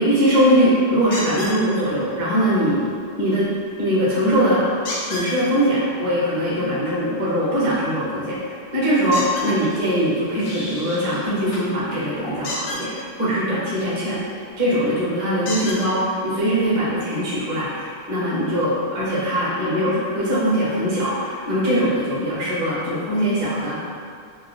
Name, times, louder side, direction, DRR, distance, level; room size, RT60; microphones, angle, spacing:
voice 1, 0.0-2.8 3.2-3.5 3.8-4.6 5.0-14.2 14.6-23.8, equal, 60° right, -9 dB, 1.5 m, -21 dB
sound 1, 1.1-1.6 4.8-5.3 9.1-9.5 12.4-12.8 14.5-14.6 15.4-15.8 16.8-16.9 17.4-17.5, left 1 dB, 80° left, 1.4 m, -29 dB
sound 2, 9.3-11.2 11.5-11.7 12.2-12.4, left 1 dB, 65° left, 1.3 m, -38 dB
4.0 x 2.1 x 2.3 m, 2.3 s
omnidirectional pair, 2.0 m